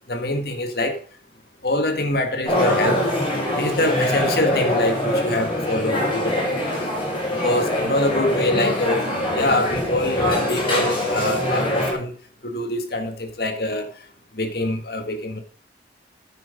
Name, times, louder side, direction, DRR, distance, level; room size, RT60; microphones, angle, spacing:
voice 1, 0.1-1.0 1.6-3.0 3.5-6.8 7.4-9.0 9.4-12.1 12.4-13.9 14.3-15.4, left 1 dB, 60° left, 1.8 m, -24 dB
sound 1, 2.4-11.9, left 1 dB, 30° left, 5.7 m, -23 dB
9.7 x 9.2 x 5.2 m
head